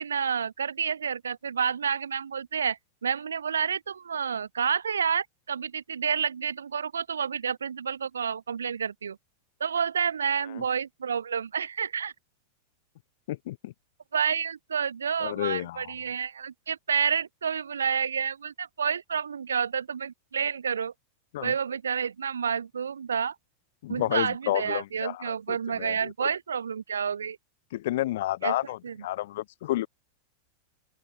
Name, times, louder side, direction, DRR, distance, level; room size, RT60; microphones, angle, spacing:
voice 1, 0.0-9.2 9.6-12.1 14.1-20.9 21.4-23.4 23.9-27.4 28.4-28.6 28.8-29.0, right 7 dB, 70° right, 2.3 m, -29 dB
voice 2, 13.3-13.7 15.2-15.9 21.3-21.5 23.8-26.3 27.7-29.9, left 15 dB, 55° left, 1.9 m, -31 dB
open air
figure-of-eight pair, 90°, 0 cm